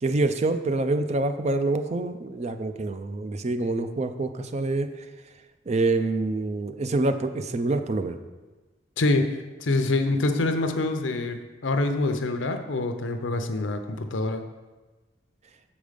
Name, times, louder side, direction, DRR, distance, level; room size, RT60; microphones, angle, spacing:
voice 1, 0.0-4.9 5.7-8.2, right 2 dB, 35° right, 9 dB, 0.4 m, -26 dB
voice 2, 9.0-14.4, left 2 dB, 75° left, 7 dB, 0.7 m, -26 dB
7.2 x 5.1 x 5.1 m, 1.2 s
head